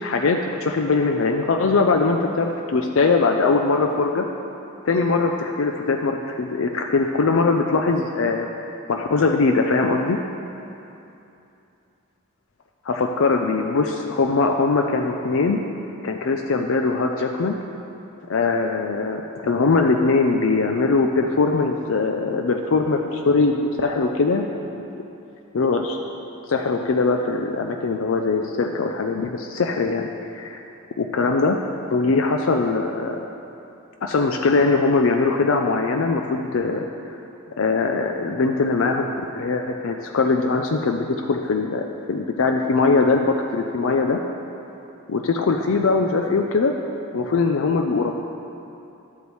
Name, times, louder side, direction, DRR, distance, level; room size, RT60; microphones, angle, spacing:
voice 1, 0.0-4.3 4.8-8.5 8.9-10.2 12.9-15.6 16.0-17.6 18.3-24.8 25.5-26.0 26.5-30.6 31.0-31.6 31.9-33.3 34.0-36.9 37.6-44.2 45.1-46.7 47.1-48.2, left 3 dB, 65° left, 3 dB, 0.4 m, -21 dB
12.0 x 8.2 x 3.2 m, 2.8 s
head